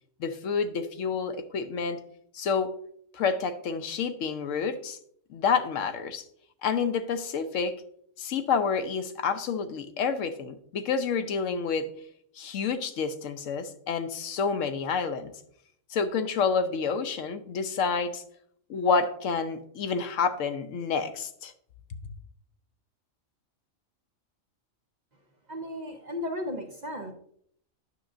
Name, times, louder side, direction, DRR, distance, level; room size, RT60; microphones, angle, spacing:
voice 1, 0.2-2.0 2.3-2.7 3.1-5.0 5.3-6.2 6.6-7.8 8.2-11.9 12.4-15.3 15.9-18.2 18.7-21.5, left 5 dB, 75° left, 10 dB, 1.0 m, -29 dB
voice 2, 25.5-27.1, left 1 dB, 45° right, 3 dB, 0.7 m, -35 dB
9.3 x 6.1 x 2.5 m, 0.66 s
omnidirectional pair, 1.4 m